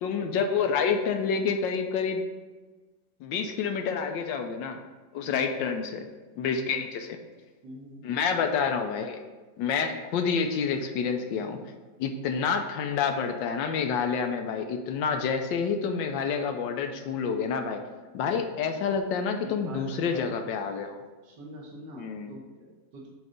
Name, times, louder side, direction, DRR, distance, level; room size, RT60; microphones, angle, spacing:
voice 1, 0.0-2.2 3.2-4.8 5.1-6.0 6.4-7.1 8.0-9.2 9.6-11.6 12.0-17.8 18.1-21.0 22.0-22.4, left 6 dB, 75° left, 6 dB, 1.3 m, -28 dB
voice 2, 5.2-5.6 6.5-6.8 7.6-8.0 19.4-20.6 21.2-23.1, right 1 dB, 65° right, -4 dB, 1.7 m, -44 dB
7.9 x 3.2 x 5.1 m, 1.3 s
omnidirectional pair, 2.1 m